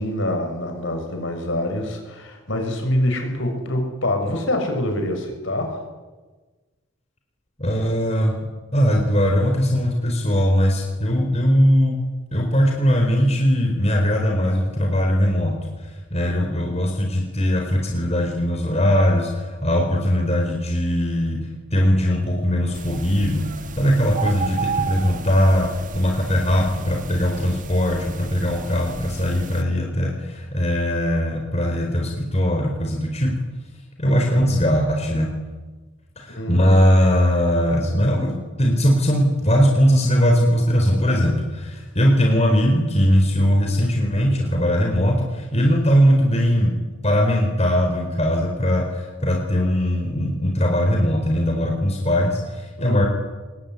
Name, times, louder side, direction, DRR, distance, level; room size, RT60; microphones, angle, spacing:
voice 1, 0.0-5.9 16.2-16.9 34.0-34.4 36.3-36.8 52.8-53.1, left 1 dB, 60° left, 4 dB, 6.7 m, -26 dB
voice 2, 7.6-12.0 12.3-15.6 15.8-21.4 21.7-33.4 34.0-35.3 36.2-46.7 47.0-53.1, equal, 30° left, 1 dB, 4.3 m, -20 dB
sound 1, 22.7-29.6, right 5 dB, 40° right, 1.6 m, -33 dB
25.5 x 21.5 x 9.7 m, 1.3 s
head